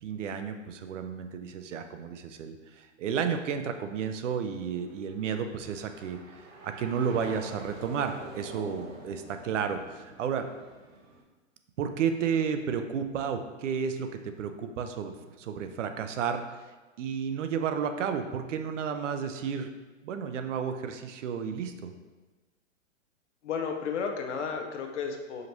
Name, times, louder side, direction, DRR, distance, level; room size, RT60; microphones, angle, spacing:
voice 1, 0.0-6.2 6.6-10.5 11.8-16.4 17.0-19.7 20.0-21.9, right 7 dB, 70° right, 8 dB, 0.5 m, -32 dB
sound 1, 3.6-11.2, right 1 dB, 85° right, 1.0 m, -47 dB
voice 2, 23.4-25.4, left 6 dB, 65° left, 3 dB, 0.7 m, -33 dB
5.0 x 2.9 x 2.6 m, 1.2 s
hypercardioid pair, 165°, 39 cm